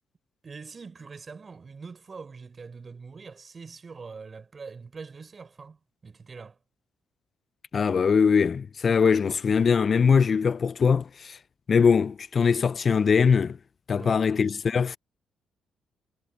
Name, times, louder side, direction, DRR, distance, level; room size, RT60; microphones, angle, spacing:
voice 1, 0.4-6.6 13.9-14.3, right 4 dB, 35° right, 5.3 m, -43 dB
voice 2, 7.7-11.4 11.7-13.6 13.9-15.0, left 6 dB, 45° left, 0.4 m, -22 dB
cardioid pair, 90°, 0 cm